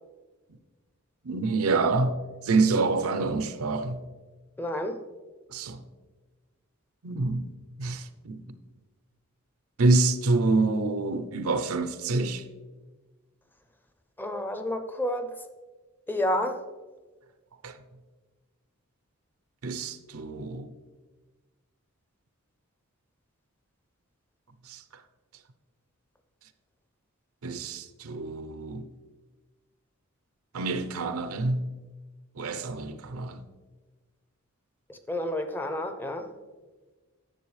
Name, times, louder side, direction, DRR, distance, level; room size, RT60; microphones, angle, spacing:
voice 1, 1.2-2.2 2.4-4.0 5.5-5.8 7.0-7.5 7.8-8.4 9.8-12.4 17.6-17.8 19.6-20.7 24.7-24.8 27.4-28.9 30.5-31.8 32.4-33.4, right 3 dB, 85° right, 0.6 m, -27 dB
voice 2, 4.6-5.0 14.2-15.3 16.1-16.6 34.9-36.3, left 1 dB, 10° left, 0.5 m, -30 dB
10.0 x 6.8 x 3.2 m
head